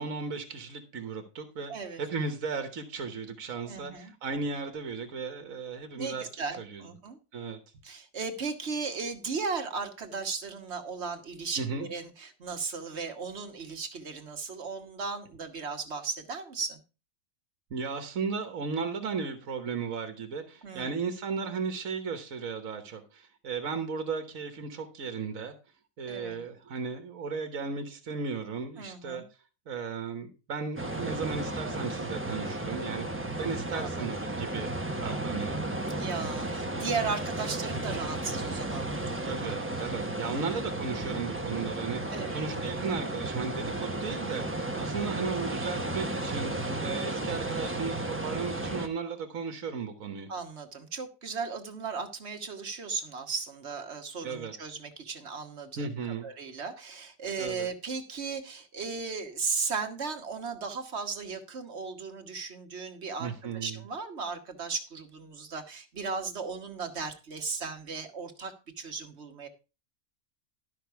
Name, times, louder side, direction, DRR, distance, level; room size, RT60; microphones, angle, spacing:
voice 1, 0.0-1.7 2.0-6.3 6.6-6.8 7.3-7.6 11.6-11.9 17.7-25.5 26.0-29.2 29.7-33.1 33.4-34.7 35.0-35.6 39.2-50.3 54.2-54.5 55.8-56.3 57.4-57.7 63.2-63.8, right 5 dB, 80° right, 7 dB, 1.6 m, -35 dB
voice 2, 1.7-2.0 3.6-4.1 5.9-7.2 7.8-16.8 20.6-20.9 26.1-26.4 28.8-29.3 33.7-34.1 36.0-39.6 40.2-40.4 42.1-42.4 50.3-55.9 56.2-69.5, right 4 dB, 55° right, 6 dB, 1.6 m, -36 dB
sound 1, 30.8-48.9, right 2 dB, 10° right, 0.9 m, -34 dB
12.0 x 5.9 x 4.6 m, 0.32 s
omnidirectional pair, 1.4 m